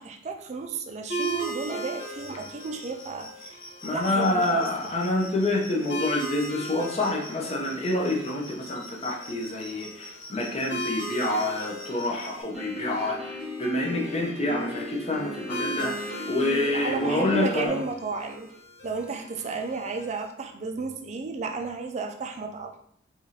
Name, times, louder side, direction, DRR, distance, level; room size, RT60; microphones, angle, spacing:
voice 1, 0.0-3.6 3.9-4.4 16.5-18.5 18.8-22.8, right 4 dB, 35° right, 4 dB, 0.4 m, -33 dB
sound 1, 1.1-20.2, right 1 dB, 60° left, 1.0 m, -39 dB
sound 2, 1.2-12.4, left 1 dB, 85° left, 0.9 m, -46 dB
voice 2, 3.8-17.8, left 1 dB, 30° left, -1 dB, 0.7 m, -27 dB
Piano, 12.5-17.7, left 2 dB, ahead, 1.3 m, -37 dB
4.6 x 2.4 x 2.8 m, 0.67 s
head